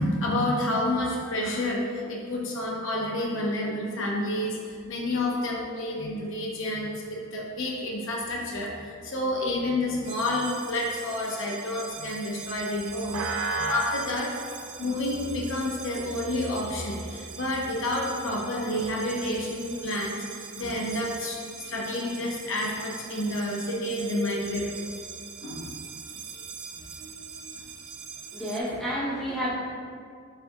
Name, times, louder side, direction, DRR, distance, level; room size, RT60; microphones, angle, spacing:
voice 1, 0.0-14.3 14.8-24.9 25.4-25.7 26.3-26.4 26.7-27.5, left 1 dB, 60° left, -2 dB, 0.6 m, -29 dB
sound 1, 10.0-28.6, right 4 dB, 75° right, 0.4 m, -39 dB
voice 2, 28.3-29.5, equal, ahead, -13 dB, 1.0 m, -30 dB
6.6 x 2.7 x 2.3 m, 2.1 s
head